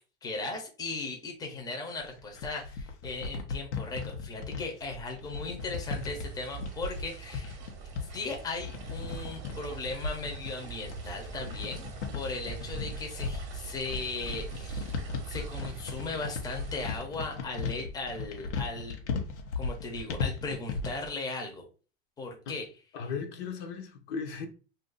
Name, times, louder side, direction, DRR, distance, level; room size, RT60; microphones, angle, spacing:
voice 1, 0.2-7.6 8.0-15.0 15.3-19.1 19.6-21.6 22.2-22.7, left 3 dB, 10° left, 0.8 m, -37 dB
sound 1, 2.0-21.1, left 4 dB, 90° left, 0.9 m, -37 dB
sound 2, 5.6-17.0, right 6 dB, 35° right, 0.9 m, -43 dB
voice 2, 22.9-24.5, left 5 dB, 50° left, 0.8 m, -36 dB
2.7 x 2.5 x 3.8 m
supercardioid pair, 135°, 33 cm